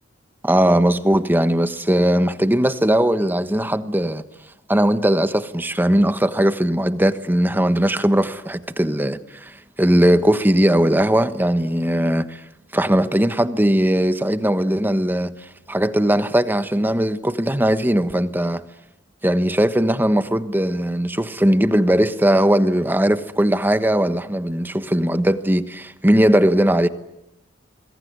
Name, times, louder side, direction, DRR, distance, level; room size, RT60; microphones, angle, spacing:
voice 1, 0.4-4.2 4.7-12.4 12.7-15.3 15.7-18.6 19.2-26.9, right 1 dB, 10° right, 1.2 m, -19 dB
26.5 x 22.0 x 9.6 m
head